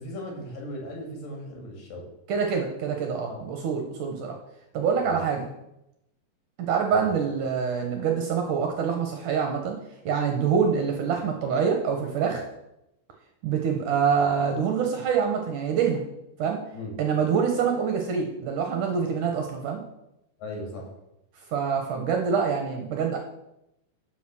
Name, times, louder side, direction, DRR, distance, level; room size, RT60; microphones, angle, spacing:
voice 1, 0.0-2.1 3.3-3.4 5.0-5.2 6.9-7.1 16.7-16.9 20.4-20.9, left 1 dB, 60° left, 1 dB, 3.8 m, -37 dB
voice 2, 2.3-4.3 4.7-5.5 6.6-9.8 10.1-12.4 13.4-16.0 16.4-16.6 17.0-19.8 21.5-23.2, right 6 dB, 65° right, 3 dB, 2.2 m, -25 dB
12.0 x 6.1 x 6.2 m, 0.85 s
omnidirectional pair, 4.6 m